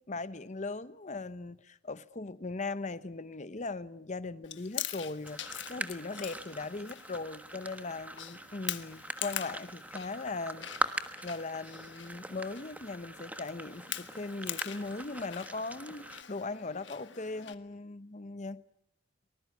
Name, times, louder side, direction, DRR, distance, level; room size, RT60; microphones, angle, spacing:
voice 1, 0.0-18.6, left 3 dB, 40° left, 0.9 m, -39 dB
Chewing mastication, 4.4-17.5, left 12 dB, 80° left, 1.4 m, -44 dB
sound 1, 5.2-16.2, right 1 dB, 10° right, 1.3 m, -42 dB
24.0 x 20.0 x 9.5 m
head